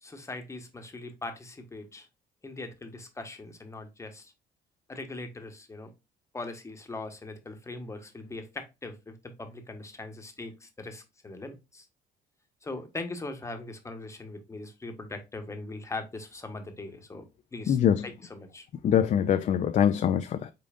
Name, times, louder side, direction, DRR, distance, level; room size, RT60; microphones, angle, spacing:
voice 1, 0.0-2.1 2.4-4.3 4.9-5.9 6.3-11.9 12.6-17.3 17.5-17.8 18.0-18.7, left 2 dB, 15° left, 1.1 m, -40 dB
voice 2, 17.7-18.1 18.8-20.5, left 9 dB, 45° left, 0.4 m, -23 dB
5.2 x 3.8 x 2.4 m
cardioid pair, 110°, 17 cm